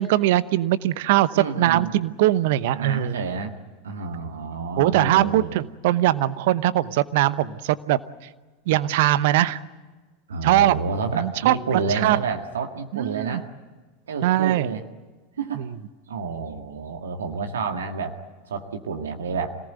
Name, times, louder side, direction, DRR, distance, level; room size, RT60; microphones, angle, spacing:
voice 1, 0.0-3.2 4.8-8.0 8.7-9.6 10.4-10.9 11.1-12.2 12.9-13.4 14.2-14.7 15.5-15.7, right 14 dB, 60° right, 15 dB, 0.9 m, -21 dB
voice 2, 1.4-1.9 2.7-3.5 3.8-5.5 10.3-13.5 14.1-14.8 15.4-15.7 16.1-18.1 18.4-19.6, right 4 dB, 75° right, 5 dB, 1.9 m, -29 dB
26.0 x 18.5 x 9.4 m, 1.3 s
figure-of-eight pair, 85°, 0 cm